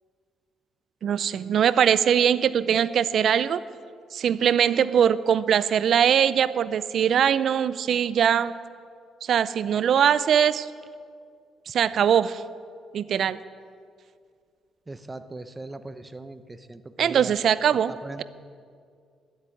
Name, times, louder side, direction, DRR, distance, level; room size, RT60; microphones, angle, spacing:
voice 1, 1.0-3.6 4.1-8.5 9.2-10.7 11.7-12.4 12.9-13.4 17.0-17.9, right 8 dB, 65° right, 16 dB, 0.5 m, -21 dB
voice 2, 14.9-17.3 17.9-18.2, right 2 dB, 20° right, 11 dB, 0.8 m, -39 dB
11.5 x 8.0 x 9.9 m, 2.2 s
cardioid pair, 90°, 0 cm